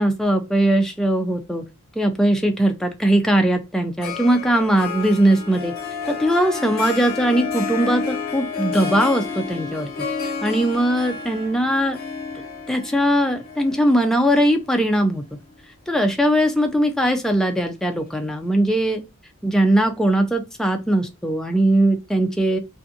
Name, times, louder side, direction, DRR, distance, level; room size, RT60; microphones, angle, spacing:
voice 1, 0.0-1.6 2.0-5.7 6.1-9.9 10.2-12.0 12.4-15.2 15.9-19.0 19.4-22.6, right 1 dB, ahead, 0.3 m, -20 dB
Harp, 4.0-15.4, left 5 dB, 45° left, 0.8 m, -30 dB
2.5 x 2.4 x 2.6 m
head